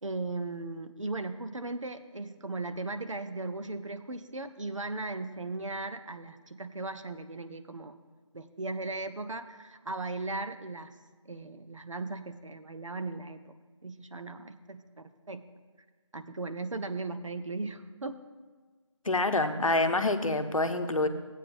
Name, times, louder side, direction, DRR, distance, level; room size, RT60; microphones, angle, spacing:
voice 1, 0.0-8.0 8.3-10.9 11.3-13.6 13.8-15.4 16.1-18.2, right 3 dB, 70° right, 9 dB, 0.7 m, -37 dB
voice 2, 19.0-21.1, left 2 dB, 85° left, 7 dB, 0.9 m, -26 dB
15.5 x 8.3 x 2.6 m, 1.4 s
figure-of-eight pair, 180°, 17 cm